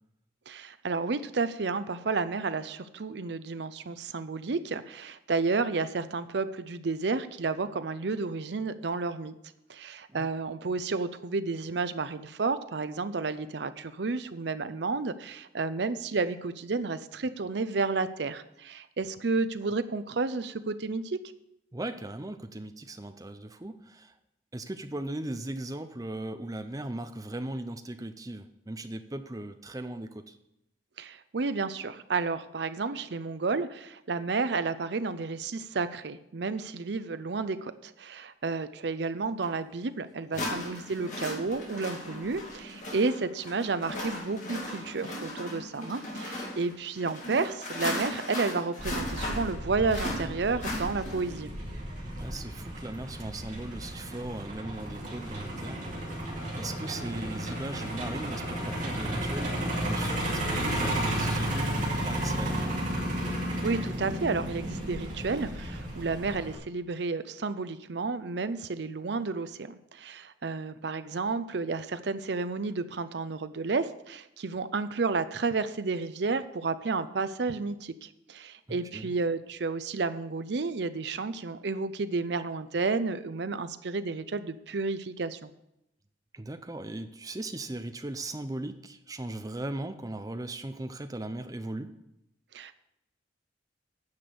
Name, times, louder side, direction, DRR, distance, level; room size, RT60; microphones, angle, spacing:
voice 1, 0.5-9.3 9.7-21.2 31.0-51.5 63.6-85.5 92.5-92.7, right 4 dB, 65° right, 12 dB, 0.6 m, -31 dB
voice 2, 21.7-24.1 24.5-30.4 40.3-40.5 52.1-55.8 56.5-62.7 78.7-79.1 86.3-91.9, right 1 dB, 20° right, 9 dB, 0.6 m, -38 dB
sound 1, 39.4-39.5 40.3-51.4, left 1 dB, 40° left, 2.3 m, -37 dB
Truck, 48.8-66.6, right 1 dB, 40° right, 2.4 m, -33 dB
9.7 x 6.1 x 6.8 m, 0.85 s
head